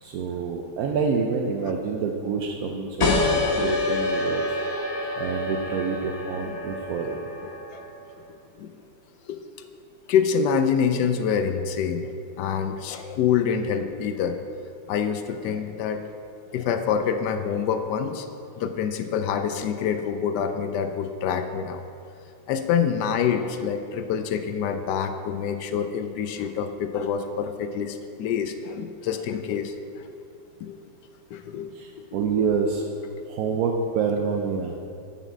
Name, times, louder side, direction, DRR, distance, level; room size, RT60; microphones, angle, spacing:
voice 1, 0.0-4.5 5.2-7.3 31.7-32.8 33.3-34.7, right 5 dB, 75° right, 2 dB, 0.8 m, -27 dB
sound 1, 3.0-8.2, left 2 dB, 45° left, 1.1 m, -27 dB
voice 2, 3.5-3.9 6.4-6.6 7.7-7.8 8.6-8.7 9.3-9.4 10.1-12.1 12.4-14.4 14.9-16.0 16.5-18.3 18.6-21.8 22.5-30.1 30.6-30.8 31.3-31.7, left 7 dB, 75° left, 8 dB, 1.0 m, -26 dB
7.1 x 5.8 x 7.3 m, 2.5 s
omnidirectional pair, 2.1 m